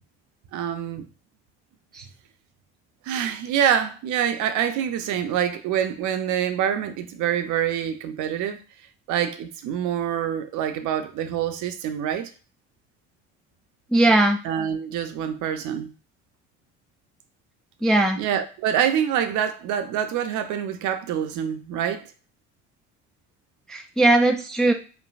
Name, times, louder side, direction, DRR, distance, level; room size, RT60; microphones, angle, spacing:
voice 1, 0.5-1.0 3.1-8.6 9.1-12.3 14.4-15.9 18.2-22.0, right 9 dB, 60° right, 0.6 m, -26 dB
voice 2, 13.9-14.4 17.8-18.2 23.7-24.7, right 2 dB, ahead, 0.3 m, -19 dB
3.2 x 2.1 x 2.4 m
hypercardioid pair, 65°, 35 cm